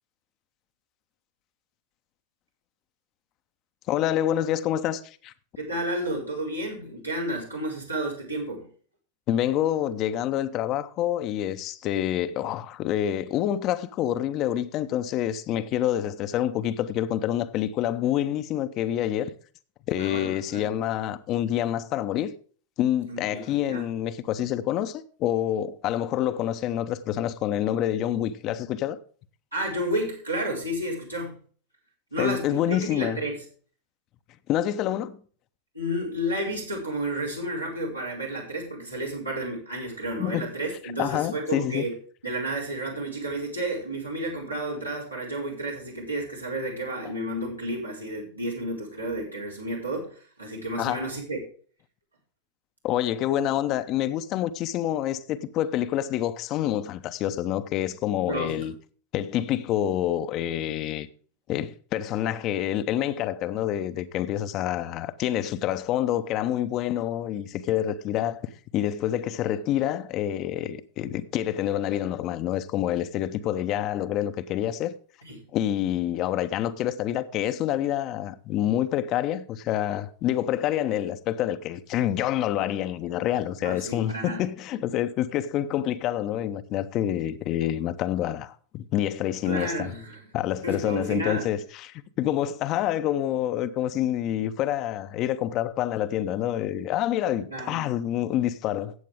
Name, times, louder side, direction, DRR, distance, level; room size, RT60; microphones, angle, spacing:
voice 1, 3.9-5.3 9.3-19.3 19.9-22.4 22.8-29.0 32.2-33.2 34.5-35.2 40.2-40.5 41.0-41.9 50.8-51.1 52.8-58.7 59.1-61.1 61.5-74.9 75.5-89.9 90.3-98.9, left 11 dB, 35° left, 0.8 m, -27 dB
voice 2, 5.6-8.7 20.0-20.7 23.1-23.9 29.5-31.3 32.1-33.4 35.7-41.9 42.2-51.4 58.3-58.7 75.2-75.4 83.6-84.4 89.4-90.2 90.6-91.5 97.5-97.9, right 1 dB, 90° right, 4.8 m, -31 dB
14.5 x 8.4 x 3.6 m
figure-of-eight pair, 90°, 0 cm